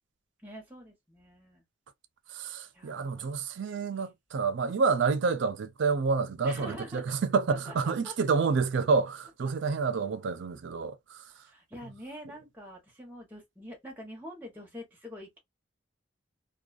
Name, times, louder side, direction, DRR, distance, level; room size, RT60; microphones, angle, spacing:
voice 1, 0.4-1.6 2.7-3.3 6.4-7.1 7.7-8.1 11.3-15.4, equal, 10° right, 0.9 m, -45 dB
voice 2, 2.3-11.2, right 4 dB, 70° right, 0.4 m, -28 dB
2.4 x 2.3 x 2.3 m
head